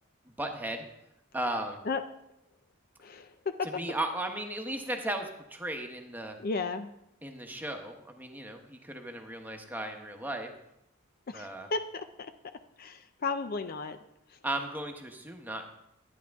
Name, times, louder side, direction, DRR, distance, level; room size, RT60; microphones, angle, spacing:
voice 1, 0.4-0.8 1.3-1.8 3.6-6.4 7.2-10.5 11.3-11.7 14.4-15.7, right 1 dB, 10° right, 4 dB, 1.0 m, -36 dB
voice 2, 3.0-3.7 6.4-6.9 11.3-12.1 12.8-14.0, left 4 dB, 45° left, 10 dB, 0.5 m, -34 dB
12.0 x 9.8 x 3.5 m, 0.82 s
head